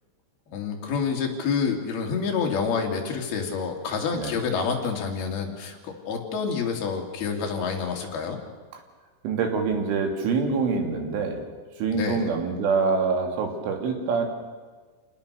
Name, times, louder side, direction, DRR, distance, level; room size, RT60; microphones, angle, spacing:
voice 1, 0.5-8.4 11.9-12.3, left 5 dB, 55° left, 1 dB, 4.2 m, -28 dB
voice 2, 9.2-11.4 11.8-14.3, right 5 dB, 80° right, 4 dB, 5.1 m, -25 dB
28.0 x 19.5 x 6.9 m, 1.4 s
omnidirectional pair, 5.6 m